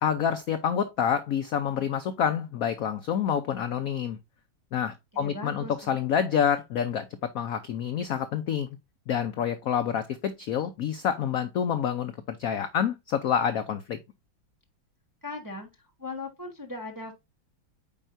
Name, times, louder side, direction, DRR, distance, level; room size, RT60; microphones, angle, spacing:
voice 1, 0.0-4.2 4.7-8.7 9.1-14.0, left 8 dB, 70° left, 0.8 m, -28 dB
voice 2, 5.1-6.0 15.2-15.7 16.0-17.1, left 2 dB, 15° right, 0.9 m, -38 dB
8.9 x 4.6 x 2.6 m
omnidirectional pair, 2.1 m